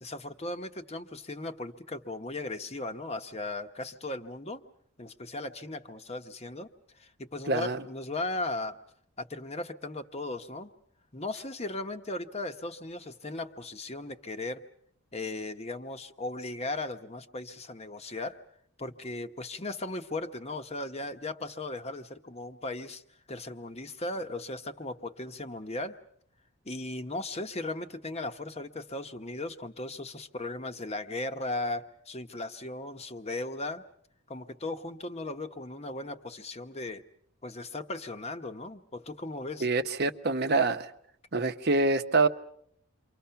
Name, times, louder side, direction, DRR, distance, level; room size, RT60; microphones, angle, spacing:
voice 1, 0.0-4.6 5.0-6.7 7.0-8.8 9.2-10.7 11.1-14.6 15.1-18.4 18.8-23.0 23.3-26.0 26.6-33.8 34.3-37.0 37.4-39.7, left 2 dB, 30° left, 8 dB, 1.0 m, -37 dB
voice 2, 7.5-7.8 39.6-40.9 41.3-42.3, right 3 dB, 45° right, 9 dB, 0.9 m, -26 dB
29.0 x 24.5 x 5.8 m, 0.68 s
head